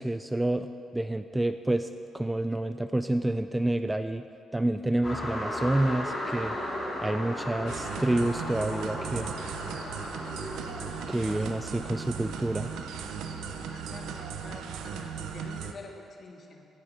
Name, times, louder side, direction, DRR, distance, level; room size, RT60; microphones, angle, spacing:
voice 1, 0.0-1.9 2.1-4.2 4.5-6.6 7.0-9.3 11.1-12.7, right 1 dB, 10° right, 10 dB, 0.4 m, -28 dB
sound 1, 5.0-14.2, left 1 dB, 25° left, 3.1 m, -37 dB
sound 2, 7.7-15.7, right 7 dB, 85° right, 0.7 m, -37 dB
voice 2, 10.4-11.5 13.7-16.7, left 3 dB, 45° left, 1 dB, 1.8 m, -47 dB
17.0 x 8.6 x 4.3 m, 2.6 s
cardioid pair, 90°, 0 cm